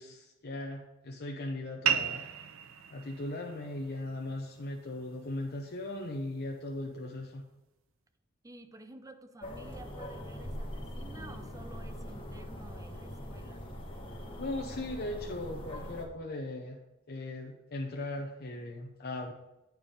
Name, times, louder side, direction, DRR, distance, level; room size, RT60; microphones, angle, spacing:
voice 1, 0.0-2.2 2.9-7.4 14.4-16.8 17.1-19.3, left 2 dB, 55° left, 0 dB, 0.8 m, -38 dB
sound 1, 1.8-6.9, right 8 dB, 85° right, 0.5 m, -37 dB
voice 2, 8.4-13.6, right 2 dB, 15° right, 8 dB, 0.5 m, -51 dB
sound 2, 9.4-16.0, equal, 25° left, 1.3 m, -42 dB
9.0 x 4.7 x 5.1 m, 0.94 s
head